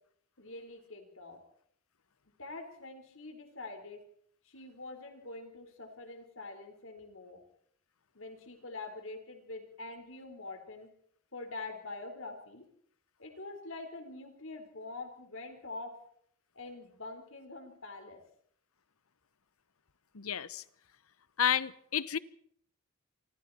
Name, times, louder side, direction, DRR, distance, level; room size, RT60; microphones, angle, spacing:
voice 1, 0.4-1.4 2.4-4.0 4.5-7.4 8.1-10.9 11.3-12.6 13.2-15.9 16.5-18.2, left 2 dB, 65° left, 5 dB, 4.3 m, -45 dB
voice 2, 20.1-20.6 21.4-22.2, left 9 dB, 85° left, 18 dB, 0.9 m, -31 dB
27.0 x 24.0 x 4.4 m, 0.67 s
head